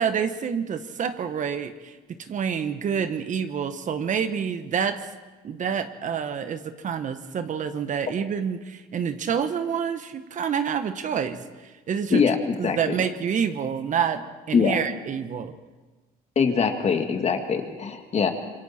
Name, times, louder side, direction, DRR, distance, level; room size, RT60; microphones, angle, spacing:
voice 1, 0.0-2.0 2.3-5.0 5.4-11.4 11.9-12.2 12.6-15.5, right 7 dB, 50° right, 9 dB, 1.3 m, -27 dB
voice 2, 12.1-12.8 14.5-14.8 16.4-18.3, left 6 dB, 40° left, 5 dB, 2.2 m, -22 dB
26.0 x 23.5 x 4.4 m, 1.2 s
cardioid pair, 110°, 17 cm